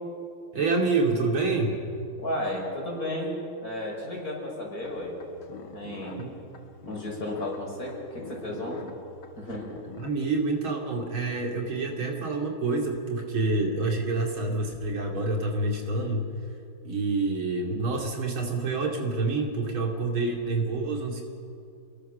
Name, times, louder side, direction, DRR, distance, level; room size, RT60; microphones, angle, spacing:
voice 1, 0.5-1.8 6.1-6.3 10.0-16.3 16.9-21.2, right 3 dB, 80° right, 1 dB, 3.5 m, -27 dB
voice 2, 2.2-3.4 3.6-5.1 5.7-6.3 6.8-8.9 9.4-9.9, left 1 dB, 45° left, -2 dB, 6.3 m, -33 dB
sound 1, 4.8-10.1, left 4 dB, 85° left, 2.2 m, -46 dB
28.5 x 21.0 x 6.7 m, 2.6 s
omnidirectional pair, 2.2 m